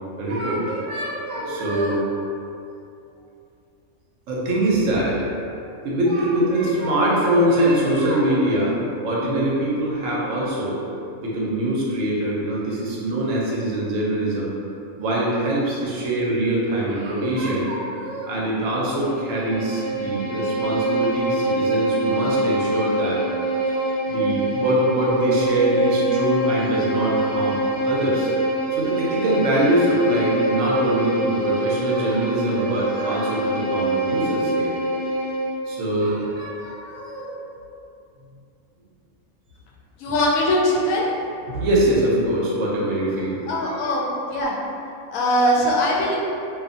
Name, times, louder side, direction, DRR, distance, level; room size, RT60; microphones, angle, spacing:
voice 1, 0.2-2.1 4.3-5.2 5.8-8.7 9.0-10.8 11.2-14.5 15.0-23.2 24.1-27.6 27.8-28.3 28.7-34.7 35.7-37.5 41.5-43.8, right 1 dB, 75° right, -5 dB, 1.0 m, -23 dB
Bowed string instrument, 19.0-35.6, right 1 dB, 5° right, 1.4 m, -24 dB
voice 2, 40.0-41.1 43.5-44.0 44.3-44.5 45.1-46.2, left 1 dB, 85° left, -4 dB, 1.0 m, -21 dB
2.6 x 2.5 x 2.5 m, 2.6 s
omnidirectional pair, 1.4 m